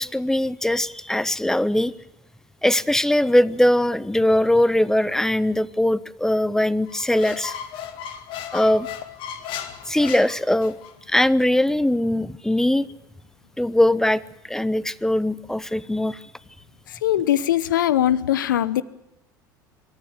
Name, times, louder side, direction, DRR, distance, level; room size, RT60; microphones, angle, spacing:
voice 1, 0.0-1.9 2.6-7.6 8.5-8.9 9.9-10.7 11.1-12.9 13.6-14.2 14.5-16.2, left 1 dB, 5° left, 20 dB, 0.7 m, -21 dB
Squeak, 6.9-10.9, left 9 dB, 50° left, 2.0 m, -35 dB
voice 2, 16.9-18.8, left 12 dB, 70° left, 18 dB, 0.9 m, -21 dB
25.5 x 13.5 x 9.6 m, 0.87 s
figure-of-eight pair, 70°, 11 cm